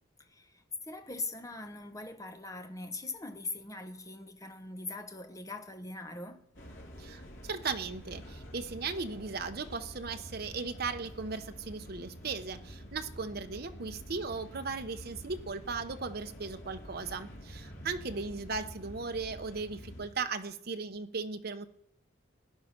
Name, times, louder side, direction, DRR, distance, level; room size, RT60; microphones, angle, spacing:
voice 1, 0.2-6.5, left 3 dB, 15° left, 0.9 m, -41 dB
sound 1, 6.5-20.1, equal, 85° left, 2.9 m, -48 dB
voice 2, 7.0-21.7, right 4 dB, 55° right, 0.9 m, -37 dB
16.0 x 10.0 x 5.9 m
head